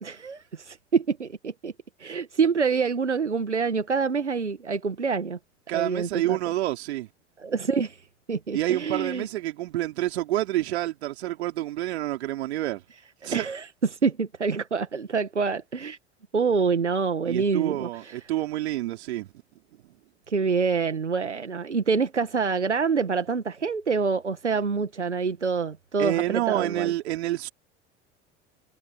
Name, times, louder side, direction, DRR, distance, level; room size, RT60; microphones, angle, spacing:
voice 1, 0.0-1.7 2.0-5.4 5.7-6.4 7.4-9.3 13.2-13.7 13.9-16.0 16.3-18.2 20.3-26.9, right 5 dB, 90° right, 1.8 m, -26 dB
voice 2, 5.7-7.1 8.5-12.8 13.2-13.5 17.2-19.3 26.0-27.5, right 15 dB, 70° right, 4.0 m, -28 dB
figure-of-eight pair, 70°, 34 cm